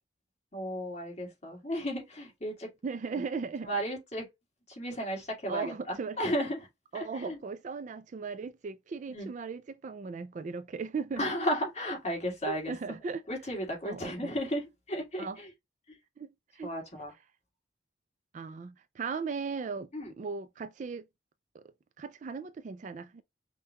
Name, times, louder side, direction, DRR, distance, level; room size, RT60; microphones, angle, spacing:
voice 1, 0.5-2.7 3.6-4.2 4.7-6.6 6.9-7.4 9.1-9.3 11.2-12.7 13.3-15.5 15.9-16.0 16.6-17.1 19.9-20.1, equal, 35° left, 2.1 m, -34 dB
voice 2, 2.8-3.7 5.5-6.2 6.9-11.2 12.5-13.3 13.9-14.3 15.2-15.4 16.2-16.7 18.3-19.9 20.2-21.1 21.5-21.6 22.0-23.2, right 5 dB, 40° right, 0.3 m, -37 dB
5.5 x 2.3 x 2.9 m
head